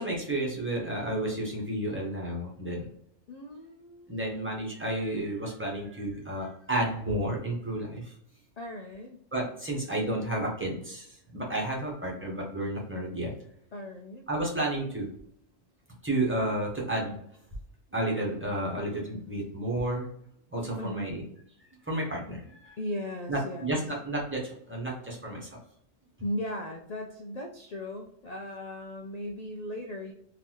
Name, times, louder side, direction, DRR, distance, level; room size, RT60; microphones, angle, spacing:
voice 1, 0.0-2.9 4.1-8.1 9.3-13.3 14.3-15.1 16.0-17.2 17.9-20.1 20.5-21.2 21.9-22.7 23.3-25.5, right 1 dB, 10° right, -3 dB, 1.0 m, -31 dB
voice 2, 3.3-4.2 8.6-9.2 13.7-14.3 20.8-21.2 22.8-23.8 26.2-30.1, left 1 dB, 80° left, 2 dB, 0.3 m, -37 dB
4.0 x 2.7 x 3.0 m, 0.71 s
omnidirectional pair, 1.3 m